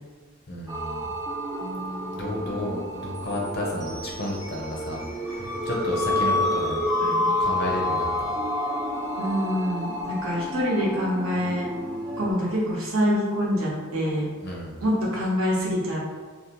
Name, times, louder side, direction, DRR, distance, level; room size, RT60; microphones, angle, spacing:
voice 1, 0.5-1.1 2.1-5.0 5.3-6.8 7.4-8.3 14.4-14.7, left 1 dB, 50° left, -2 dB, 0.5 m, -31 dB
sound 1, 0.7-12.3, left 1 dB, 15° right, 0.4 m, -29 dB
voice 2, 6.6-7.4 9.2-11.7 12.2-14.2 14.8-16.0, equal, 85° right, -5 dB, 0.8 m, -26 dB
2.5 x 2.0 x 2.9 m, 1.4 s
head